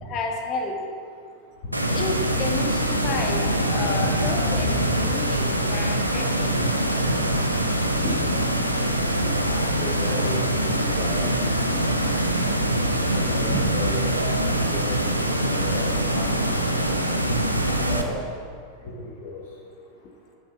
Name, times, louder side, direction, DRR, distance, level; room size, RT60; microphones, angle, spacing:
voice 1, 0.0-0.8 1.9-6.5 20.0-20.1, left 3 dB, 35° left, 2 dB, 1.5 m, -31 dB
sound 1, 1.7-18.0, right 1 dB, 90° right, 0.8 m, -24 dB
voice 2, 3.7-4.1 4.5-4.9 7.1-7.2 9.2-11.8 13.0-16.8 17.2-18.2 18.8-19.4, left 1 dB, 55° left, -3 dB, 1.9 m, -33 dB
10.0 x 6.9 x 5.9 m, 2.2 s
figure-of-eight pair, 90°, 0 cm